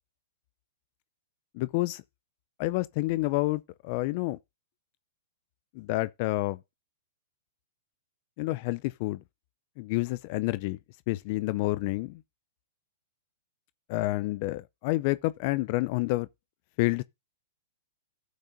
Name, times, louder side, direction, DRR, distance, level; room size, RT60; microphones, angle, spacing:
voice 1, 1.5-2.0 2.6-4.4 5.7-6.6 8.4-9.2 9.8-10.8 11.1-12.2 13.9-16.3 16.8-17.0, left 20 dB, 50° left, 0.4 m, -29 dB
12.0 x 8.2 x 2.7 m
hypercardioid pair, 120°, 0 cm